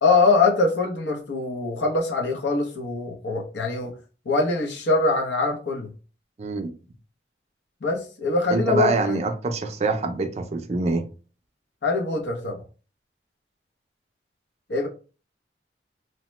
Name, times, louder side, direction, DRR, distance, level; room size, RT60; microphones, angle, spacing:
voice 1, 0.0-3.9 4.3-5.9 7.8-9.2 11.8-12.6 14.7-14.9, left 3 dB, 90° left, 0.7 m, -23 dB
voice 2, 6.4-6.7 8.5-11.1, right 3 dB, 35° right, 0.4 m, -25 dB
2.8 x 2.1 x 3.1 m
head